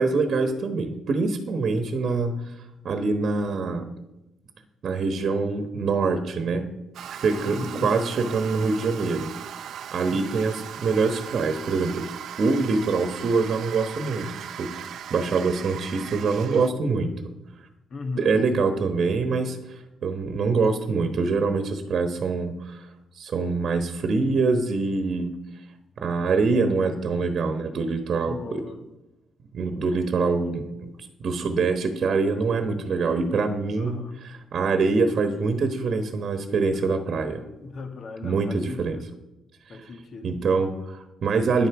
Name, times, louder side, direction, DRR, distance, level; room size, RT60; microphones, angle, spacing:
voice 1, 0.0-3.9 4.8-6.7 7.1-9.3 9.9-10.5 10.8-17.1 18.2-22.9 23.2-25.3 26.0-28.6 29.5-30.9 31.2-34.1 34.5-37.4 38.2-39.0 39.7-39.8 40.2-41.7, right 4 dB, 55° right, 8 dB, 1.1 m, -25 dB
Toilet flush, 6.9-16.7, right 9 dB, 70° right, 0.6 m, -38 dB
voice 2, 7.4-8.0 10.1-10.7 17.9-18.4 28.2-28.8 33.8-34.3 36.7-36.9 37.6-39.1 39.7-40.4, left 3 dB, 55° left, 7 dB, 1.5 m, -37 dB
10.0 x 8.2 x 5.9 m, 0.95 s
cardioid pair, 90°, 0 cm